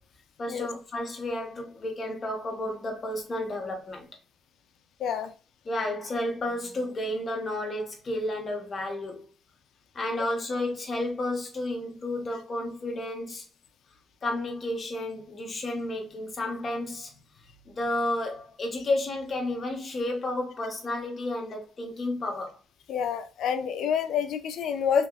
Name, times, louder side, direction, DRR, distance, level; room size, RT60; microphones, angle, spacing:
voice 1, 0.4-4.1 5.6-9.3 9.9-13.4 14.2-17.1 17.7-22.6, left 1 dB, 40° left, 0.9 m, -31 dB
voice 2, 5.0-5.3 10.1-10.2 22.9-25.1, left 7 dB, 75° left, 0.4 m, -28 dB
2.8 x 2.8 x 2.4 m
cardioid pair, 90°, 0 cm